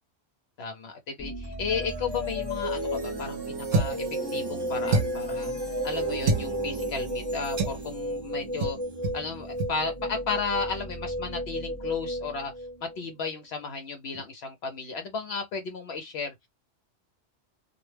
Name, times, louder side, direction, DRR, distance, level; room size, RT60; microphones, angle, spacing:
voice 1, 0.6-4.0 4.3-5.5 5.8-8.8 9.1-12.5 13.0-16.3, left 5 dB, 70° left, 0.8 m, -34 dB
sound 1, 1.2-13.3, left 1 dB, 10° left, 0.8 m, -34 dB
sound 2, 1.4-10.7, right 4 dB, 25° right, 0.6 m, -38 dB
sound 3, 3.7-4.1 4.9-5.3 6.2-6.5 7.6-7.8 8.6-8.8 9.0-9.2 9.6-9.7, right 2 dB, 70° right, 0.8 m, -26 dB
2.2 x 2.1 x 3.1 m
omnidirectional pair, 1.2 m